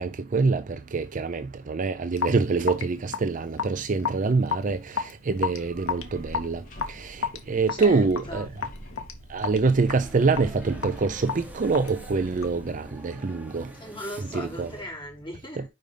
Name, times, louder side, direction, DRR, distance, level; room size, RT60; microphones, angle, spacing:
voice 1, 0.0-6.6 6.9-8.5 9.3-13.7 14.3-14.7, right 4 dB, 40° right, 0.5 m, -25 dB
Raindrop / Drip, 2.2-12.7, left 6 dB, 80° left, 1.2 m, -33 dB
sound 1, 5.2-13.7, equal, 40° left, 2.1 m, -46 dB
voice 2, 7.7-8.5 13.7-15.7, left 1 dB, 25° left, 4.3 m, -38 dB
sound 2, 9.9-14.9, equal, 10° right, 1.2 m, -46 dB
5.3 x 5.2 x 5.0 m
head